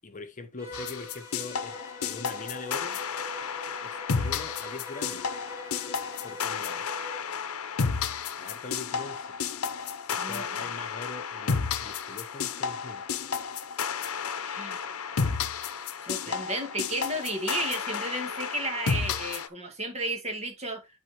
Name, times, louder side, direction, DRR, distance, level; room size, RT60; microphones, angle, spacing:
voice 1, 0.0-3.0 3.8-5.3 6.2-6.9 8.3-9.4 10.1-13.1 16.2-16.4, left 3 dB, 35° left, 1.0 m, -42 dB
Bowed string instrument, 0.6-7.3, left 1 dB, 15° right, 1.9 m, -44 dB
sound 1, 0.7-19.5, left 6 dB, 85° left, 0.8 m, -32 dB
voice 2, 14.4-14.9 16.0-20.9, right 1 dB, 30° right, 2.0 m, -33 dB
10.5 x 4.5 x 3.0 m
head